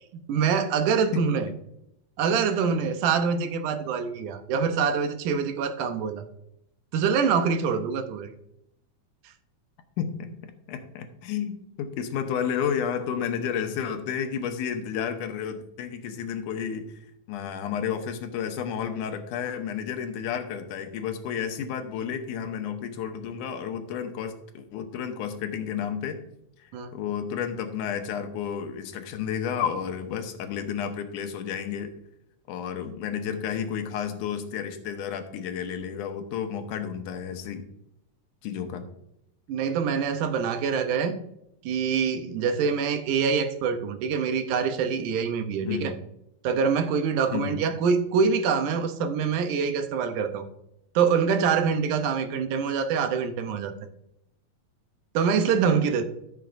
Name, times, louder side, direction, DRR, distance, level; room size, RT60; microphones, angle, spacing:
voice 1, 0.3-1.5 2.2-6.2 6.9-8.3 26.7-26.9 39.5-41.1 41.6-45.9 46.4-50.5 51.0-53.7 55.1-56.0, right 6 dB, 85° right, 8 dB, 2.3 m, -25 dB
voice 2, 10.0-10.3 10.7-16.9 17.3-26.2 26.9-31.9 32.5-37.6 38.4-38.9 45.6-45.9 47.3-47.6, left 8 dB, 85° left, 7 dB, 2.4 m, -31 dB
14.0 x 7.0 x 2.6 m, 0.80 s
omnidirectional pair, 3.5 m